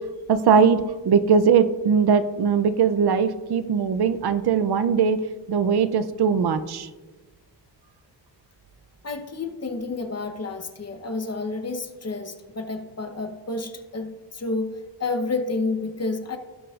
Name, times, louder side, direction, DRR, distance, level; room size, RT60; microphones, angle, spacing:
voice 1, 0.3-5.2 5.5-6.9, right 6 dB, 65° right, 12 dB, 0.6 m, -20 dB
voice 2, 9.0-16.4, left 3 dB, 35° left, 7 dB, 0.9 m, -30 dB
17.0 x 6.0 x 2.4 m, 1.2 s
wide cardioid pair, 125°, 42 cm